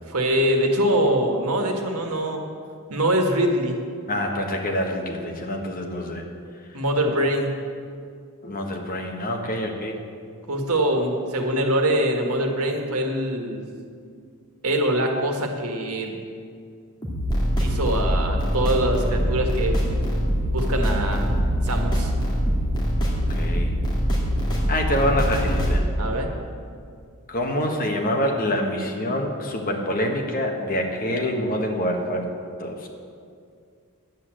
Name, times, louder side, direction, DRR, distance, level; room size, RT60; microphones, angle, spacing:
voice 1, 0.1-2.4 2.9-3.8 6.7-7.5 10.5-13.6 14.6-16.1 17.6-19.8 20.5-21.3 21.6-22.1 26.0-26.3, right 1 dB, 75° right, 3 dB, 1.6 m, -23 dB
voice 2, 4.1-6.2 8.4-10.0 23.1-23.7 24.7-25.8 27.3-32.3 32.6-32.9, left 1 dB, 40° left, 2 dB, 1.4 m, -26 dB
sound 1, 17.0-25.7, equal, 20° left, 2.2 m, -23 dB
10.5 x 8.5 x 7.6 m, 2.3 s
head